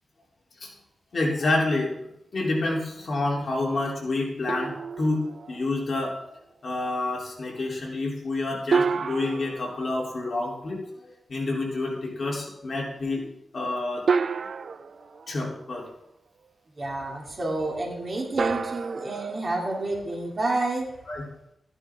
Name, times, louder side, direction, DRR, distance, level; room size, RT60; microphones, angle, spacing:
voice 1, 1.1-6.3 6.6-13.2 13.5-14.0 15.3-15.9 21.1-21.2, left 2 dB, 50° left, -2 dB, 3.1 m, -28 dB
sound 1, 4.5-5.9 8.7-10.7 12.4-12.5 14.1-15.9 18.4-20.4, right 5 dB, 60° right, 0.4 m, -30 dB
voice 2, 16.7-21.0, right 2 dB, 35° right, -1 dB, 2.6 m, -29 dB
14.0 x 10.5 x 3.6 m, 0.81 s
wide cardioid pair, 150°, 0 cm